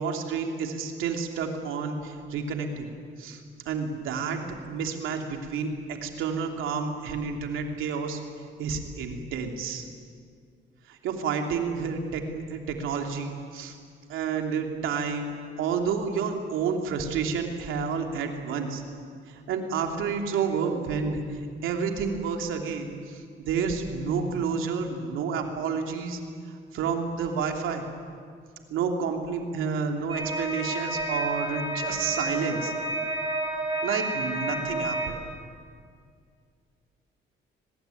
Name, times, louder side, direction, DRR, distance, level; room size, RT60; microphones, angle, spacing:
voice 1, 0.0-2.9 3.2-4.4 4.7-5.7 6.0-8.2 8.6-9.9 10.9-13.8 14.1-15.3 15.6-18.8 19.3-26.2 26.5-27.8 28.7-32.7 33.8-35.1, right 5 dB, 90° right, 3 dB, 3.0 m, -30 dB
sound 1, 30.1-35.1, right 1 dB, 25° right, 6.5 m, -30 dB
23.5 x 20.0 x 9.3 m, 2.1 s
cardioid pair, 90°, 20 cm